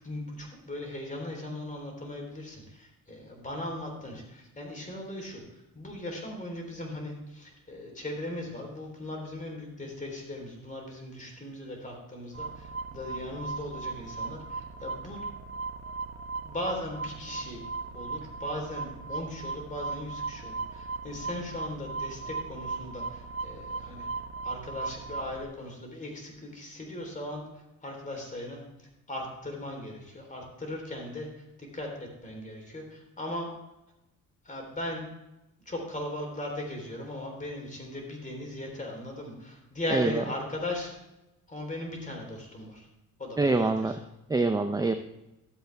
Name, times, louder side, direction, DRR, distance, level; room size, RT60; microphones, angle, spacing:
voice 1, 0.0-15.2 16.4-17.6 17.9-24.1 24.4-33.5 34.4-35.0 35.7-40.9 41.5-42.9 43.2-44.0, left 1 dB, 20° left, 1 dB, 3.6 m, -38 dB
sound 1, 12.3-25.4, right 4 dB, 40° right, 1.0 m, -37 dB
voice 2, 39.9-40.2 43.4-43.9 44.3-44.9, right 3 dB, 10° right, 8 dB, 0.5 m, -25 dB
13.0 x 7.8 x 3.4 m, 0.92 s
cardioid pair, 85°, 35 cm